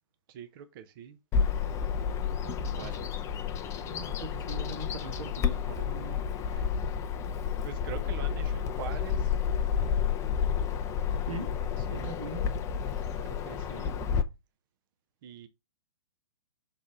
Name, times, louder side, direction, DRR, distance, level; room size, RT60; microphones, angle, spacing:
voice 1, 0.3-1.2 2.4-3.0 6.5-6.8 7.6-9.3 11.8-12.2 13.2-14.0 15.2-15.5, right 9 dB, 40° right, 0.7 m, -44 dB
Bird vocalization bird call bird song, 1.3-14.2, left 7 dB, 15° left, 0.5 m, -30 dB
voice 2, 2.4-2.9 3.8-6.3 11.3-11.5 11.9-12.4, right 3 dB, 85° right, 1.8 m, -41 dB
5.9 x 3.8 x 5.3 m
hypercardioid pair, 125°, 17 cm